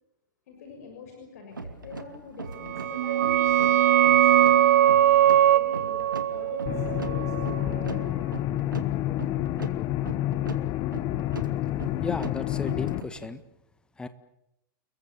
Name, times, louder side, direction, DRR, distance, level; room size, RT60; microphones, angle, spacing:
voice 1, 0.5-4.9 5.4-8.2, left 5 dB, 50° left, 3 dB, 6.4 m, -44 dB
sound 1, 1.5-13.4, right 3 dB, 75° right, 2.3 m, -40 dB
sound 2, 2.6-8.0, right 11 dB, 50° right, 1.1 m, -21 dB
sound 3, 6.7-13.0, left 14 dB, 30° left, 1.2 m, -29 dB
voice 2, 12.0-13.4 14.0-14.1, left 3 dB, 10° left, 12 dB, 1.7 m, -34 dB
30.0 x 22.0 x 7.1 m, 0.84 s
figure-of-eight pair, 105°, 11 cm